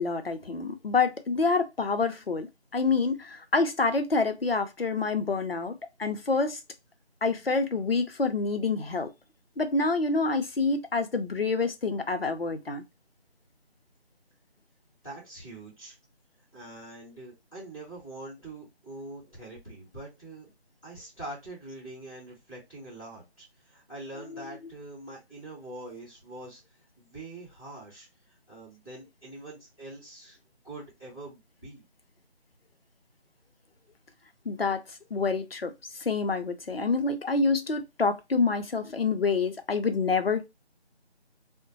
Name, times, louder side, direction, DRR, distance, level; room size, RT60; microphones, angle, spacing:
voice 1, 0.0-5.7 6.0-6.6 7.2-9.1 9.6-12.8 34.5-34.8 35.1-35.7 36.0-40.5, left 4 dB, 60° left, 0.6 m, -27 dB
voice 2, 15.0-16.0 16.5-20.5 20.8-30.4 30.6-31.8, right 2 dB, 5° left, 1.5 m, -44 dB
3.8 x 2.1 x 2.6 m
figure-of-eight pair, 170°, 34 cm